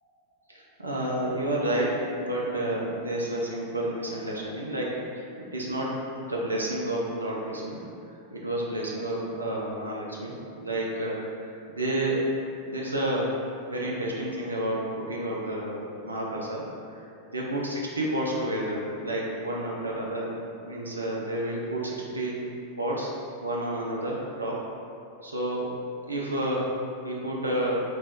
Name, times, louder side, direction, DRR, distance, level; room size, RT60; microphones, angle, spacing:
voice 1, 0.5-12.3 12.7-13.4 13.7-22.5 22.8-23.1 23.4-24.6 25.2-25.7 26.1-26.7 27.0-27.8, right 1 dB, 75° right, -3 dB, 0.5 m, -30 dB
3.0 x 2.9 x 3.5 m, 2.6 s
figure-of-eight pair, 90°, 0 cm